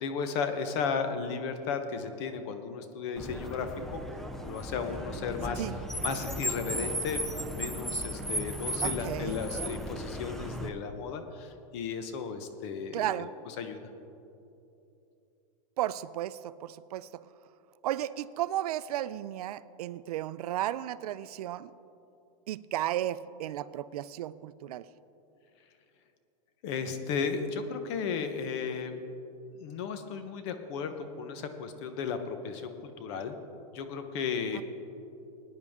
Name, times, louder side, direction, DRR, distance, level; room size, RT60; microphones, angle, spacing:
voice 1, 0.0-4.0 4.4-5.6 6.0-13.2 13.6-13.9 26.6-29.0 29.5-33.4 33.7-34.6, left 5 dB, 45° left, 8 dB, 1.0 m, -34 dB
Car, 3.2-10.7, equal, ahead, 0.4 m, -35 dB
voice 2, 8.8-9.4 12.9-13.3 15.8-17.2 17.8-21.7 22.5-24.9 34.5-34.6, right 13 dB, 75° right, 16 dB, 0.5 m, -34 dB
20.5 x 9.6 x 3.6 m, 2.8 s
supercardioid pair, 160°, 20 cm